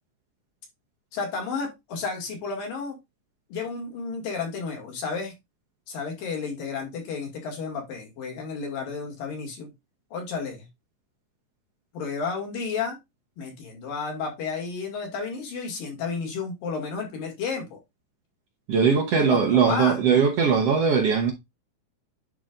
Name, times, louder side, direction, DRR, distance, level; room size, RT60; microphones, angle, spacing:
voice 1, 1.1-3.0 3.5-5.3 5.9-9.7 10.1-10.7 11.9-13.0 13.4-17.8 19.1-20.0, left 5 dB, 85° left, 4.0 m, -32 dB
voice 2, 18.7-21.3, right 6 dB, 65° right, 1.7 m, -20 dB
10.5 x 4.2 x 2.5 m
omnidirectional pair, 3.9 m